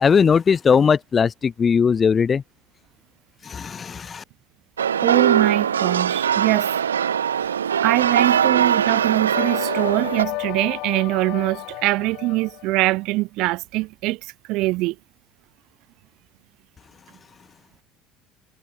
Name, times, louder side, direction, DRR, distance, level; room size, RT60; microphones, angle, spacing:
voice 1, 0.0-2.4 3.5-4.2, left 6 dB, 35° left, 0.7 m, -19 dB
sound 1, 4.8-10.3, right 8 dB, 90° right, 1.2 m, -21 dB
voice 2, 5.0-6.7 7.8-14.2 14.5-15.0, right 21 dB, 65° right, 2.2 m, -22 dB
sound 2, 9.3-13.0, left 24 dB, 65° left, 3.6 m, -33 dB
hypercardioid pair, 65°, 0 cm